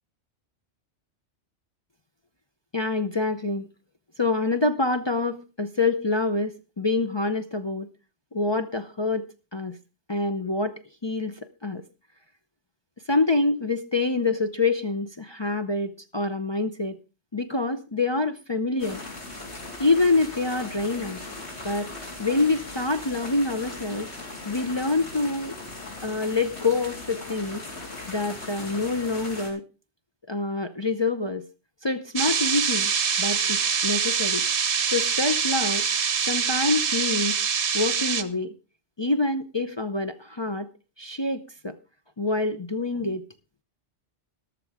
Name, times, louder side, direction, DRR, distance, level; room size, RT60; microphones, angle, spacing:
voice 1, 2.7-3.7 4.2-7.9 8.3-9.3 9.5-9.8 10.1-11.8 13.1-17.0 17.3-19.0 19.8-21.2 21.6-21.9 22.2-24.1 24.5-25.6 26.0-27.6 28.1-29.6 30.3-31.4 31.8-32.9 33.2-34.4 34.9-35.9 36.3-37.4 37.7-38.5 39.0-40.7 41.0-41.8 42.2-43.2, left 3 dB, 30° left, 6 dB, 0.6 m, -26 dB
sound 1, 18.8-29.5, left 2 dB, 65° left, 4.0 m, -38 dB
sound 2, 32.2-38.2, right 7 dB, 55° right, 1.0 m, -25 dB
13.5 x 12.5 x 3.5 m, 0.31 s
omnidirectional pair, 1.2 m